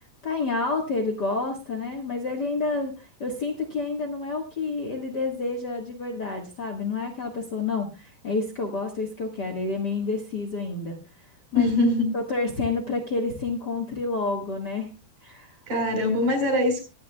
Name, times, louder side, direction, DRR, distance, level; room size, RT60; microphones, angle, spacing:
voice 1, 0.2-11.0 11.5-11.7 12.1-14.9 15.2-15.6, left 3 dB, 75° left, 1 dB, 0.9 m, -29 dB
voice 2, 11.5-12.1 15.7-16.8, left 2 dB, 45° right, 4 dB, 6.0 m, -22 dB
23.5 x 9.7 x 2.3 m, 0.29 s
omnidirectional pair, 4.7 m